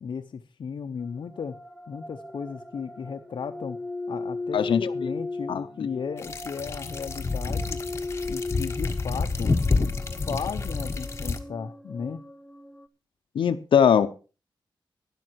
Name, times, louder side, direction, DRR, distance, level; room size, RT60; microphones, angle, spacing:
voice 1, 0.0-1.6 1.9-3.8 4.1-7.8 8.3-9.5 10.2-12.2, left 6 dB, 60° left, 0.8 m, -35 dB
sound 1, 1.0-12.9, left 3 dB, 5° left, 0.9 m, -37 dB
sound 2, 6.2-11.4, left 3 dB, 30° left, 1.3 m, -28 dB
voice 2, 13.3-14.1, left 8 dB, 90° left, 0.8 m, -20 dB
12.0 x 10.5 x 4.6 m
wide cardioid pair, 150°, 8 cm